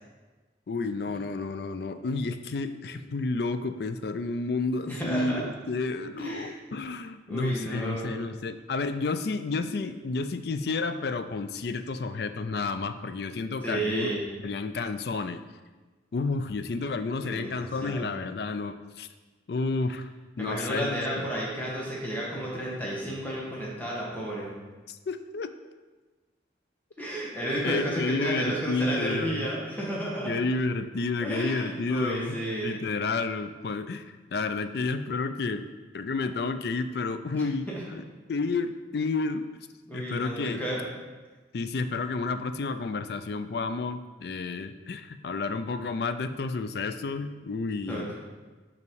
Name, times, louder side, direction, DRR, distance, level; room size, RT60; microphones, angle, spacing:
voice 1, 0.7-14.1 14.4-15.4 16.1-19.1 19.5-20.1 20.4-20.9 21.2-21.3 24.9-25.5 27.6-29.5 30.3-35.7 35.9-38.0 38.3-39.4 39.9-40.6 41.5-48.1, left 3 dB, 60° left, 10 dB, 0.4 m, -31 dB
voice 2, 4.9-5.4 6.2-6.5 7.3-8.3 13.6-14.2 17.2-18.1 20.4-24.5 27.0-30.3 31.2-32.8 37.3-37.4 37.7-37.8 39.9-40.8 47.9-48.1, right 1 dB, 10° left, -5 dB, 1.4 m, -32 dB
5.7 x 5.2 x 4.7 m, 1.3 s
head